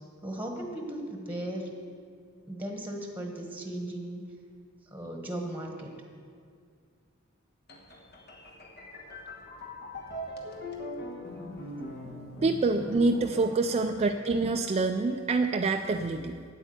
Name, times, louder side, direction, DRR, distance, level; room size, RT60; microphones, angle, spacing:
voice 1, 0.2-1.7 2.5-4.2 4.9-6.0 13.3-13.5, right 1 dB, 10° right, 1 dB, 1.2 m, -37 dB
sound 1, 7.7-14.4, left 1 dB, 50° left, 1.4 m, -41 dB
voice 2, 12.4-16.4, right 3 dB, 30° right, 4 dB, 0.4 m, -26 dB
9.0 x 8.8 x 7.8 m, 2.2 s
head